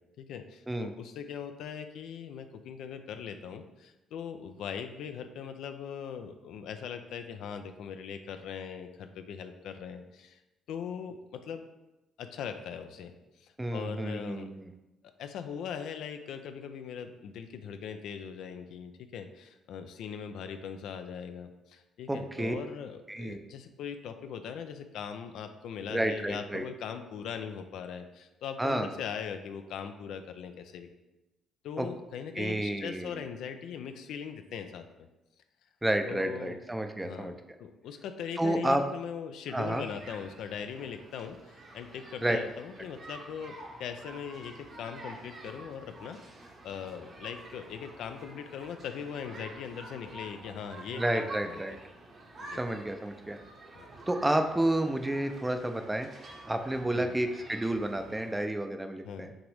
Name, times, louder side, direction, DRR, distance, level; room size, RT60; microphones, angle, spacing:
voice 1, 0.2-10.4 10.7-11.6 12.2-13.1 13.4-14.5 15.2-30.9 31.6-35.1 36.0-36.6 37.0-46.2 46.6-51.8 52.4-52.6 53.8-53.9 56.9-57.1 59.0-59.4, left 7 dB, 75° left, 8 dB, 0.3 m, -40 dB
voice 2, 13.6-14.7 22.1-22.5 23.1-23.4 25.9-26.7 28.6-28.9 31.8-31.9 32.4-33.2 35.8-37.3 38.4-38.8 39.5-39.8 42.2-42.4 50.9-51.8 52.5-53.4 54.1-56.1 56.5-59.3, right 1 dB, 15° right, 6 dB, 0.5 m, -30 dB
sound 1, 39.6-58.4, right 2 dB, 50° right, 1.0 m, -48 dB
5.9 x 2.6 x 3.4 m, 1.0 s
supercardioid pair, 65°, 0 cm